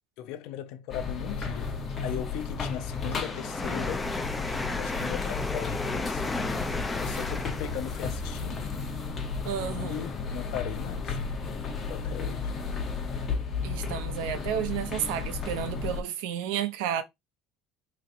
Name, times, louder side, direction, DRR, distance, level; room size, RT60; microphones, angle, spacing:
voice 1, 0.2-1.8 2.0-4.1 4.7-6.5 7.0-8.7 9.6-11.2 11.9-12.5, left 11 dB, 70° left, 0.5 m, -38 dB
sound 1, 0.9-16.0, left 4 dB, 30° left, 0.9 m, -34 dB
sound 2, 2.4-11.1 11.8-11.9 12.7-12.8, left 2 dB, 10° left, 0.5 m, -35 dB
voice 2, 9.4-10.0 13.6-17.0, right 9 dB, 90° right, 0.6 m, -31 dB
4.0 x 3.1 x 2.6 m
cardioid pair, 140°, 0 cm